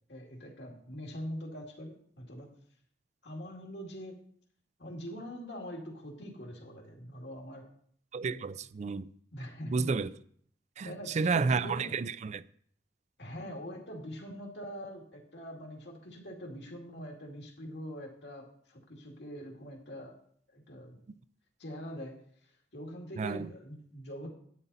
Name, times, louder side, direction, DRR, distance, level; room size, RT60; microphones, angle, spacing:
voice 1, 0.1-2.5 3.2-4.2 4.8-7.7 8.2-8.5 9.3-10.0 10.8-12.0 13.2-20.2 20.5-21.0 21.6-22.2 22.7-24.3, equal, 70° left, 2.2 m, -43 dB
voice 2, 8.1-9.1 9.7-10.1 10.8-10.9 11.1-12.4 23.2-23.5, right 4 dB, 40° right, 0.4 m, -30 dB
11.0 x 9.1 x 4.1 m
head